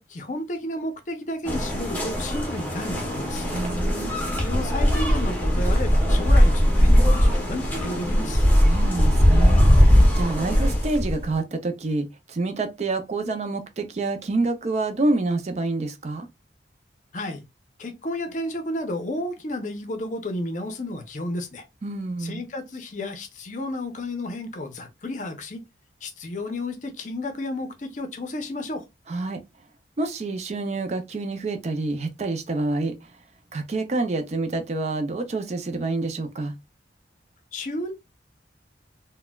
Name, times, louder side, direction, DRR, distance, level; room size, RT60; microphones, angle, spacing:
voice 1, 0.0-3.5 4.4-8.4 17.1-17.4 17.8-21.6 22.2-25.6 26.0-28.8 37.5-37.9, left 1 dB, 40° left, 0.6 m, -32 dB
sound 1, 1.4-11.3, equal, 10° left, 0.7 m, -19 dB
voice 2, 3.5-4.1 8.6-16.3 21.8-22.4 29.1-29.4 30.0-33.1 33.5-36.6, right 2 dB, 35° right, 0.4 m, -27 dB
4.0 x 2.1 x 2.2 m
head